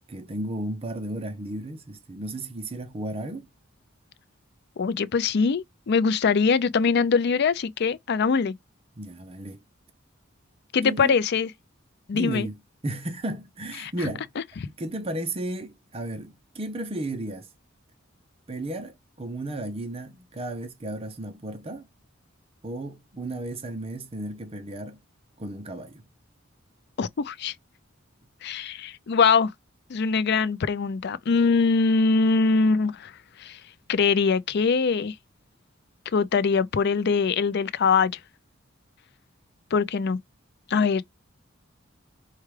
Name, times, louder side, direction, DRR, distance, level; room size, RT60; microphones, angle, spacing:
voice 1, 0.1-3.5 9.0-9.6 10.8-11.2 12.1-14.3 14.8-17.5 18.5-21.9 22.6-25.0 25.4-26.0, right 1 dB, 30° right, 0.6 m, -34 dB
voice 2, 4.8-8.5 10.7-11.5 12.1-12.5 13.8-13.9 27.0-27.5 28.4-29.5 29.9-33.1 33.4-33.6 33.9-35.1 36.1-38.1 39.7-40.2 40.7-41.0, left 5 dB, 55° left, 0.4 m, -22 dB
4.6 x 2.3 x 3.2 m
head